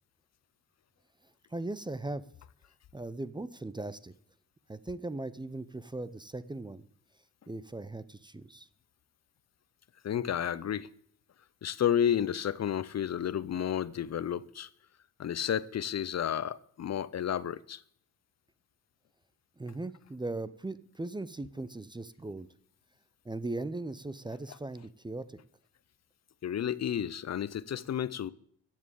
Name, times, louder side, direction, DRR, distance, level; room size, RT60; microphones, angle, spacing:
voice 1, 1.5-2.2 2.9-4.1 4.7-6.8 7.5-8.7 19.6-22.5 23.2-25.4, right 2 dB, 15° right, 0.6 m, -38 dB
voice 2, 10.0-10.9 11.6-14.7 15.2-17.8 26.4-28.3, left 9 dB, 50° left, 0.6 m, -31 dB
15.0 x 7.5 x 8.3 m
cardioid pair, 90°, 34 cm